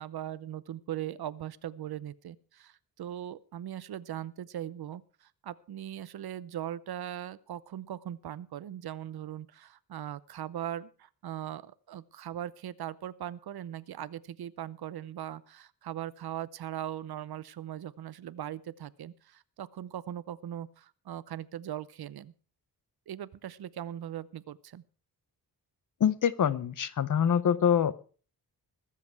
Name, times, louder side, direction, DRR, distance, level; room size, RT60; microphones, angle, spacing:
voice 1, 0.0-22.3 23.1-24.8, right 11 dB, 75° right, 18 dB, 0.7 m, -40 dB
voice 2, 26.0-27.9, left 8 dB, 55° left, 17 dB, 0.7 m, -25 dB
21.5 x 7.6 x 4.7 m, 0.39 s
wide cardioid pair, 165°, 37 cm